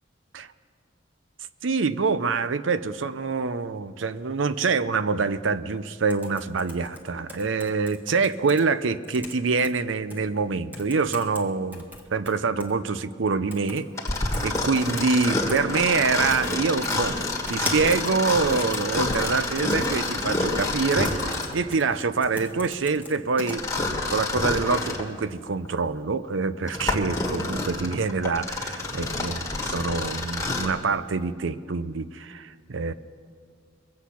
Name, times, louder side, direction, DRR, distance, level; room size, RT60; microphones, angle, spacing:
voice 1, 1.6-11.9 12.1-13.9 14.4-17.2 17.5-23.6 24.1-32.9, right 4 dB, 75° right, 14 dB, 0.6 m, -25 dB
sound 1, 6.1-8.6 9.0-9.7 10.1-10.2 10.7-11.4 11.7-12.7 13.5-13.8 14.1-15.6 16.3-16.5 16.8-23.6, left 1 dB, 10° right, 1.6 m, -38 dB
Mechanisms, 14.0-21.6 23.5-25.1 25.7-25.8 26.4-30.8, left 2 dB, 15° left, 1.7 m, -28 dB
22.5 x 8.3 x 5.8 m, 2.1 s
head